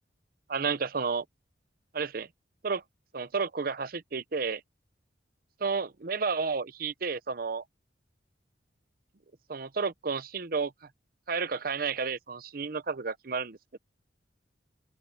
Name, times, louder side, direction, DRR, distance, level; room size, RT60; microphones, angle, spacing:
voice 1, 0.5-1.2 1.9-2.3 2.6-2.8 3.1-4.6 5.6-7.6 9.5-10.7 11.3-13.8, right 5 dB, 50° right, 0.7 m, -31 dB
open air
head